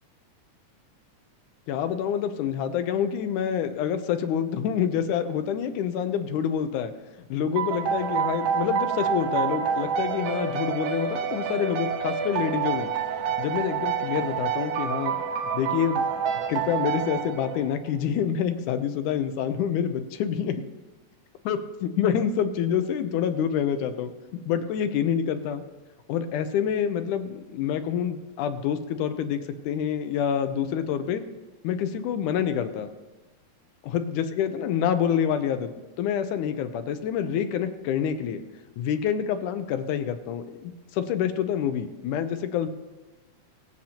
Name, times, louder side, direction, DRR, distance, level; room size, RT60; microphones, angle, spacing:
voice 1, 1.7-6.9 7.3-12.9 13.4-15.2 15.5-16.1 16.5-20.6 21.5-24.1 24.5-25.6 26.1-29.4 29.7-31.2 31.6-32.9 33.9-38.4 38.8-42.7, left 8 dB, 85° left, 8 dB, 2.3 m, -27 dB
sound 1, 7.6-17.9, right 7 dB, 90° right, 2.3 m, -28 dB
22.5 x 7.8 x 2.9 m, 1.2 s
omnidirectional pair, 3.5 m